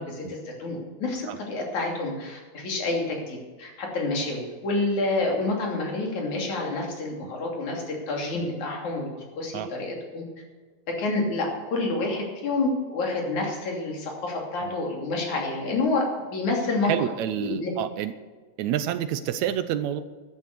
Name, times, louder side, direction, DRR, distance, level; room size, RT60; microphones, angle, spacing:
voice 1, 0.0-10.2 10.9-16.9 17.4-17.7, left 2 dB, 75° left, 0 dB, 4.3 m, -28 dB
voice 2, 16.8-18.1 18.6-20.0, right 10 dB, 75° right, 12 dB, 1.9 m, -28 dB
13.0 x 11.0 x 6.7 m, 1.4 s
omnidirectional pair, 3.4 m